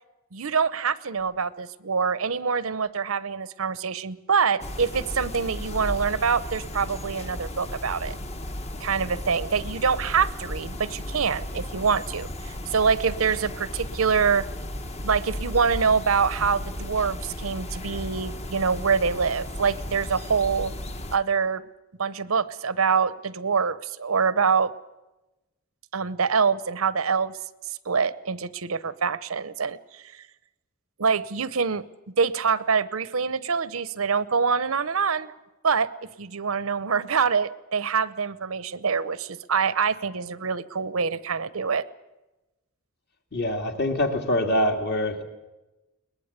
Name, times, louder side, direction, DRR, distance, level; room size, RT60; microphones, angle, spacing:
voice 1, 0.3-8.2 8.8-14.5 15.0-20.7 21.1-21.6 22.0-24.7 25.9-27.3 27.9-30.2 31.0-31.8 32.2-35.3 35.6-35.9 36.2-41.8, right 5 dB, 90° right, 16 dB, 0.8 m, -25 dB
Soft City Park Ambience, 4.6-21.2, left 1 dB, 30° left, 1.0 m, -35 dB
voice 2, 43.3-45.2, left 1 dB, 50° left, 4 dB, 2.4 m, -24 dB
22.0 x 20.0 x 8.2 m, 1.0 s
head